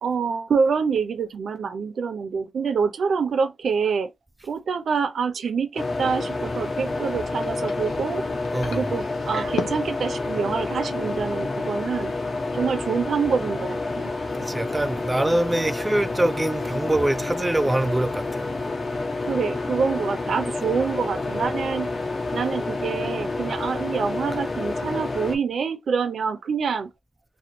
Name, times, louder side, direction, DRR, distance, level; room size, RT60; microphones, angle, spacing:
voice 1, 0.0-4.1 4.4-8.2 8.7-12.1 12.5-14.1 19.2-21.9 22.3-26.9, right 5 dB, 70° right, 0.5 m, -26 dB
sound 1, 5.8-25.4, left 3 dB, 40° left, 1.0 m, -29 dB
sound 2, 6.2-11.3, left 6 dB, 85° left, 0.6 m, -39 dB
voice 2, 8.5-8.9 14.4-18.5, right 1 dB, 15° right, 0.3 m, -24 dB
3.1 x 2.5 x 2.8 m
cardioid pair, 85°, 0 cm